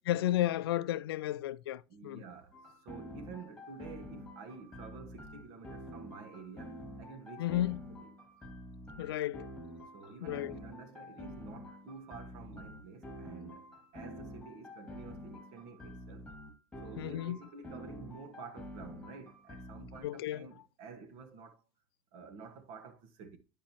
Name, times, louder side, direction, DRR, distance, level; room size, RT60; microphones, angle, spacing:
voice 1, 0.1-2.2 7.4-7.8 9.0-9.5 10.2-10.6 17.0-17.4 20.0-20.5, left 14 dB, 80° left, 0.4 m, -33 dB
voice 2, 1.9-8.1 9.9-16.3 16.8-21.6 22.1-23.4, right 5 dB, 60° right, 1.4 m, -50 dB
sound 1, 2.5-20.0, equal, 5° left, 2.5 m, -48 dB
10.0 x 5.3 x 3.0 m
hypercardioid pair, 90°, 13 cm